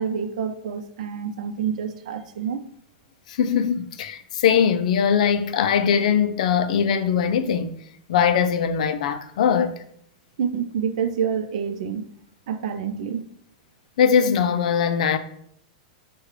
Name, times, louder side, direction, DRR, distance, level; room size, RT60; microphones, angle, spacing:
voice 1, 0.0-2.6 10.4-12.1 12.5-13.2, right 7 dB, 75° right, 0.5 m, -27 dB
voice 2, 3.3-7.8 8.1-9.8 14.0-15.2, left 7 dB, 75° left, 0.4 m, -21 dB
4.7 x 2.3 x 4.8 m
supercardioid pair, 150°, 4 cm